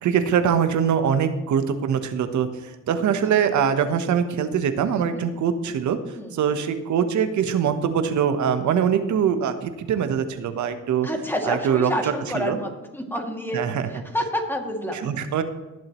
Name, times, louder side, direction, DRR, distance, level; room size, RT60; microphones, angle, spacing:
voice 1, 0.0-2.5 2.9-6.0 6.3-11.1 11.5-11.9 12.3-12.5 13.5-13.9 15.0-15.4, right 8 dB, 70° right, 9 dB, 1.1 m, -23 dB
voice 2, 11.0-15.0, left 1 dB, 5° left, 1 dB, 2.4 m, -29 dB
20.5 x 7.4 x 3.1 m, 1.1 s
cardioid pair, 90°, 30 cm